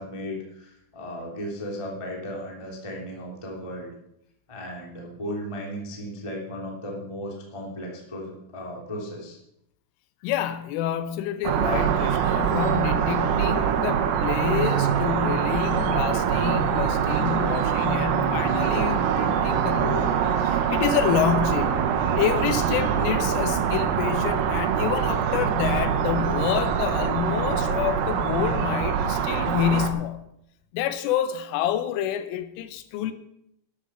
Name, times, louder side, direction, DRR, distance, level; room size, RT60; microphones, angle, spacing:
voice 1, 0.0-3.9 4.5-9.4, equal, 15° left, 1.1 m, -35 dB
voice 2, 10.2-20.1 20.4-21.8 22.2-30.2 30.7-33.1, left 10 dB, 80° left, 3.3 m, -28 dB
sound 1, 11.4-29.9, right 8 dB, 90° right, 3.8 m, -24 dB
12.5 x 10.5 x 5.6 m
omnidirectional pair, 5.8 m